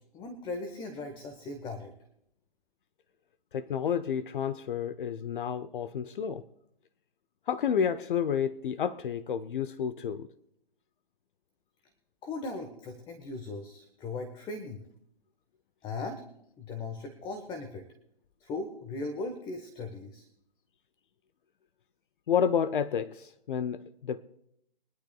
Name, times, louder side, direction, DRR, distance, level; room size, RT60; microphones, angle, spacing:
voice 1, 0.1-1.9 12.2-14.8 15.8-16.2 16.6-17.9 18.4-20.3, left 3 dB, 15° left, 1.2 m, -38 dB
voice 2, 3.5-6.4 7.5-10.3 22.3-24.2, left 8 dB, 60° left, 0.7 m, -30 dB
23.0 x 11.5 x 2.3 m
hypercardioid pair, 140°, 30 cm